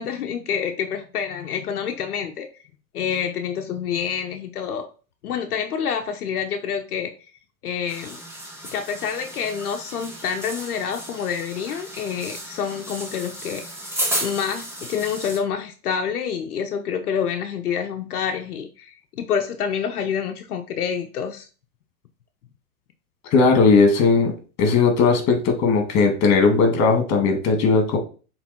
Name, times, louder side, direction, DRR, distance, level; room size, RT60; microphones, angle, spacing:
voice 1, 0.0-2.5 2.9-4.9 5.2-7.1 7.6-8.2 8.6-13.6 14.2-21.5, left 7 dB, 80° left, 4 dB, 0.9 m, -27 dB
sound 1, 7.9-15.4, right 1 dB, 5° right, 1.6 m, -33 dB
voice 2, 23.3-24.3 24.6-28.0, left 4 dB, 35° left, 5 dB, 2.3 m, -17 dB
7.0 x 3.6 x 4.3 m, 0.36 s
hypercardioid pair, 115°, 44 cm